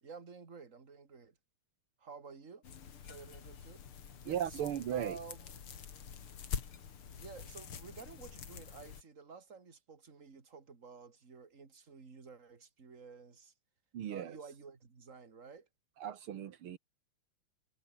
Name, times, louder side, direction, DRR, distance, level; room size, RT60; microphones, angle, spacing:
voice 1, 0.0-1.4 2.0-2.7 3.0-5.5 7.1-13.5 14.1-15.7, right 5 dB, 35° right, 2.8 m, -52 dB
sound 1, 2.6-9.0, left 7 dB, 75° left, 3.0 m, -46 dB
voice 2, 4.3-5.2 13.9-14.3 16.0-16.8, right 10 dB, 80° right, 2.1 m, -37 dB
omnidirectional pair, 2.4 m